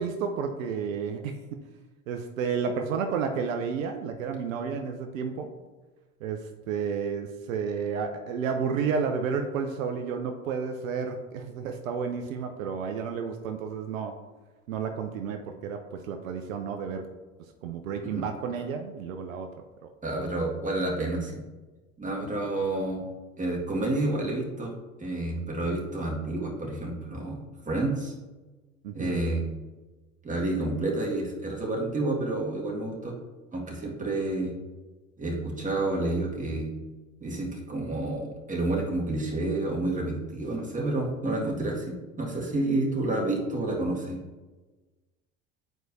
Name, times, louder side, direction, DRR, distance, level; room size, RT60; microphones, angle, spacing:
voice 1, 0.0-1.3 2.1-5.5 6.2-14.1 14.7-17.0 17.6-19.5 28.8-29.1, right 6 dB, 75° right, 5 dB, 0.7 m, -31 dB
voice 2, 20.0-21.4 22.0-23.1 23.4-24.7 25.0-28.1 28.9-29.4 30.2-33.1 33.5-34.5 35.2-36.7 37.2-44.2, right 2 dB, 20° right, -2 dB, 2.0 m, -29 dB
9.1 x 4.6 x 2.7 m, 1.2 s
hypercardioid pair, 75°, 40 cm